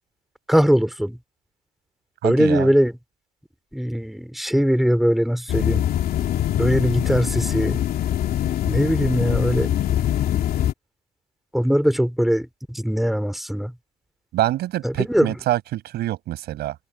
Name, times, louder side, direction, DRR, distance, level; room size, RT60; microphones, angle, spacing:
voice 1, 0.5-1.2 2.2-2.9 3.7-5.9 6.6-7.8 8.7-9.7 11.5-13.7 14.8-15.3, equal, ahead, 3.8 m, -21 dB
voice 2, 2.2-2.7 14.3-16.8, right 14 dB, 75° right, 7.9 m, -25 dB
sound 1, 5.5-10.7, left 11 dB, 65° left, 2.9 m, -23 dB
cardioid pair, 110°, 17 cm